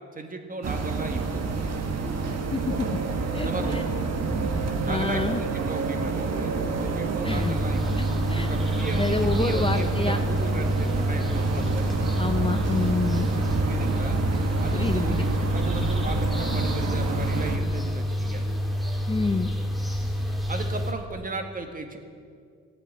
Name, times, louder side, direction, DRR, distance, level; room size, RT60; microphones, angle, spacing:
voice 1, 0.1-1.5 3.4-4.2 4.9-6.5 6.8-7.8 8.4-12.0 13.6-14.2 14.6-15.3 15.5-18.4 20.5-22.0, right 3 dB, 30° right, 5 dB, 1.8 m, -36 dB
sound 1, 0.6-17.6, right 4 dB, 60° right, 1.6 m, -28 dB
voice 2, 2.5-2.9 3.3-3.8 4.9-5.4 7.2-7.6 8.0-8.5 8.9-10.2 12.2-13.3 14.7-15.2 19.1-19.5, left 3 dB, 20° left, 7 dB, 0.7 m, -28 dB
sound 2, 7.3-20.9, equal, ahead, 1.8 m, -28 dB
14.0 x 8.5 x 8.2 m, 2.2 s
cardioid pair, 90°, 30 cm